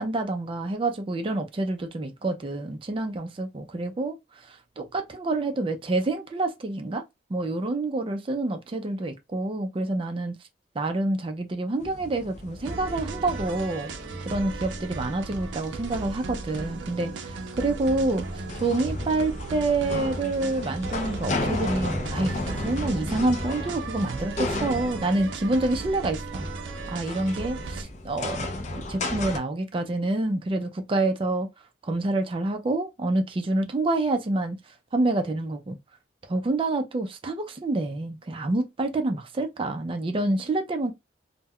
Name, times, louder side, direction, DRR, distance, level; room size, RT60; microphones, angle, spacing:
voice 1, 0.0-7.0 7.3-10.3 10.8-13.9 14.3-31.5 31.8-34.6 34.9-35.8 36.2-40.9, right 2 dB, 30° right, 0.4 m, -27 dB
sound 1, 11.8-29.4, left 2 dB, 40° left, 0.4 m, -35 dB
sound 2, 12.6-27.8, right 4 dB, 90° right, 0.4 m, -36 dB
2.2 x 2.0 x 3.5 m
head